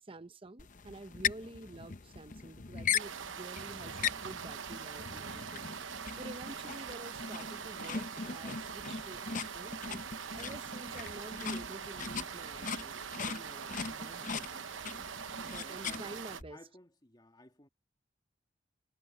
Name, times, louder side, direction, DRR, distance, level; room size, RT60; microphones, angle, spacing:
voice 1, 0.0-5.6 6.2-10.0 10.3-14.4 15.4-16.6, right 2 dB, 30° right, 0.8 m, -49 dB
sound 1, 0.6-16.4, left 6 dB, 45° left, 0.8 m, -40 dB
sound 2, 3.0-16.4, right 7 dB, 90° right, 0.9 m, -43 dB
voice 2, 14.1-14.7 15.3-17.7, left 1 dB, 20° left, 2.3 m, -59 dB
head